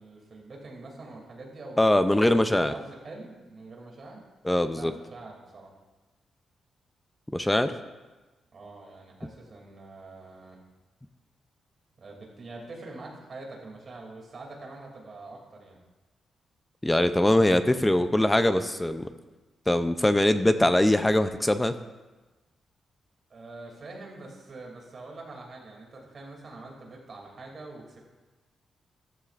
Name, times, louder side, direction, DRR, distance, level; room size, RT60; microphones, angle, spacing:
voice 1, 0.0-4.2 4.7-5.7 8.5-10.6 12.0-15.8 17.3-17.7 23.3-28.0, right 2 dB, 40° right, -1 dB, 2.5 m, -45 dB
voice 2, 1.8-2.7 4.4-4.9 7.3-7.7 16.8-19.1 19.7-21.7, left 1 dB, 10° left, 10 dB, 0.4 m, -22 dB
14.5 x 14.0 x 2.5 m, 1.2 s
wide cardioid pair, 170°, 0 cm